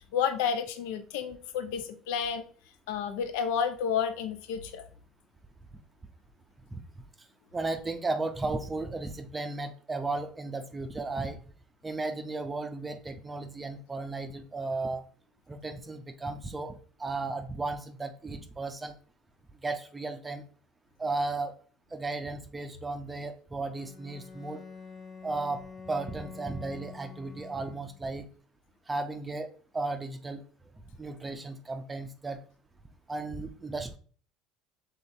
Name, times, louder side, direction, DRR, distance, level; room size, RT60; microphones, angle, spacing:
voice 1, 0.1-2.4 2.9-4.8, left 7 dB, 85° left, 9 dB, 0.6 m, -30 dB
voice 2, 7.5-11.4 11.8-15.0 15.5-19.0 19.6-20.4 21.0-21.6 21.9-24.6 25.2-25.6 25.9-28.3 28.9-30.4 31.0-32.4 33.1-34.0, right 3 dB, 15° right, 7 dB, 0.5 m, -35 dB
Bowed string instrument, 23.8-28.2, left 5 dB, 50° left, 1.3 m, -47 dB
5.6 x 3.6 x 2.6 m, 0.42 s
supercardioid pair, 110°, 0 cm